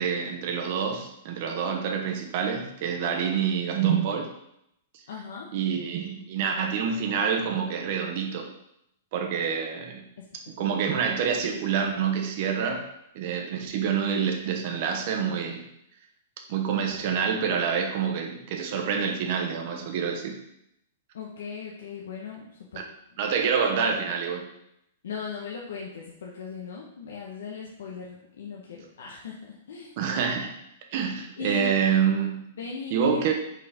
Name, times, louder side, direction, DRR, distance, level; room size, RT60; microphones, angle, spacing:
voice 1, 0.0-4.3 5.5-8.5 9.1-10.0 10.6-12.9 13.1-15.6 16.5-20.3 22.7-22.8 23.2-24.4 30.0-30.5 30.9-32.5 32.9-33.3, right 7 dB, 35° right, 3 dB, 0.9 m, -27 dB
voice 2, 5.1-5.5 10.2-10.3 10.6-10.7 21.1-22.8 23.4-23.5 25.0-29.9 31.4-31.7 32.6-33.1, left 5 dB, 75° left, -2 dB, 1.0 m, -38 dB
5.6 x 4.2 x 4.8 m, 0.78 s
hypercardioid pair, 175°, 0 cm